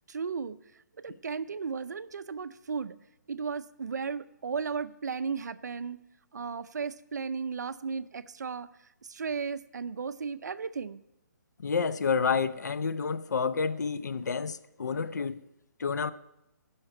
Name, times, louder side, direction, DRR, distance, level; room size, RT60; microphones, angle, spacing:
voice 1, 0.1-0.6 1.0-3.0 3.3-6.0 6.3-8.7 9.1-11.0, right 5 dB, 70° right, 0.6 m, -35 dB
voice 2, 11.6-15.4 15.8-16.1, left 5 dB, 70° left, 0.6 m, -29 dB
11.0 x 5.9 x 9.0 m
hypercardioid pair, 175°, 10 cm